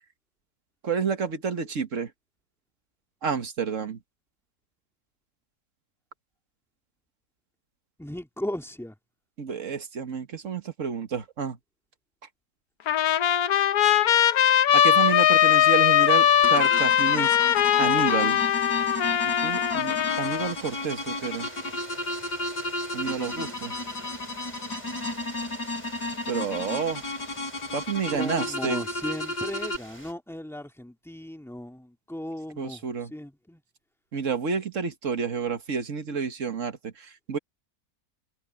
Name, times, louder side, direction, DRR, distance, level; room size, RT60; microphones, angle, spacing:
voice 1, 0.8-2.1 3.2-4.0 9.4-11.6 14.7-17.4 17.8-18.4 19.4-21.5 22.9-23.7 26.3-27.0 27.7-28.8 32.6-33.1 34.1-37.4, right 6 dB, 50° right, 1.7 m, -30 dB
voice 2, 8.0-8.9 21.3-21.5 28.1-33.6, left 1 dB, ahead, 2.0 m, -37 dB
Trumpet, 12.9-20.5, left 10 dB, 70° left, 1.3 m, -21 dB
sound 1, 14.7-30.1, right 1 dB, 20° right, 4.4 m, -46 dB
sound 2, 16.4-29.8, left 2 dB, 85° left, 8.1 m, -33 dB
omnidirectional pair, 1.7 m